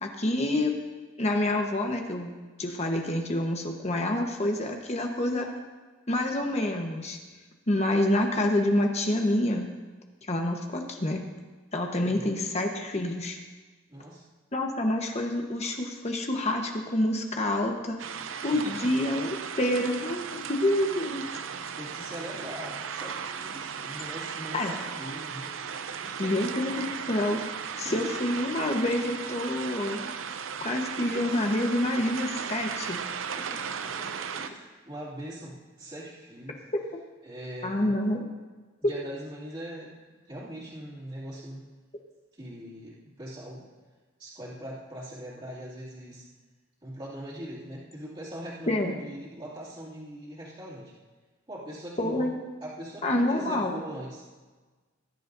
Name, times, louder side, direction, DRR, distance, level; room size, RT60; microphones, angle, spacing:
voice 1, 0.0-0.8 1.2-5.5 6.1-7.2 7.7-9.7 10.3-11.2 11.7-13.4 14.5-18.0 18.4-21.4 24.5-24.7 26.2-27.4 27.8-30.1 30.6-33.0 37.6-38.2 38.8-38.9 48.7-48.9 52.0-52.4 53.0-53.7, left 1 dB, 35° left, 2 dB, 1.1 m, -27 dB
voice 2, 13.9-14.2 18.5-18.9 21.8-25.5 25.9-26.5 27.8-28.1 33.4-36.6 37.2-37.9 38.8-39.9 40.3-41.6 42.3-43.7 44.2-46.3 46.8-50.9 51.5-52.3 52.6-54.3, equal, 25° right, -9 dB, 2.6 m, -41 dB
sound 1, 18.0-34.5, right 7 dB, 80° right, 0.6 m, -36 dB
19.5 x 11.0 x 2.7 m, 1.3 s
head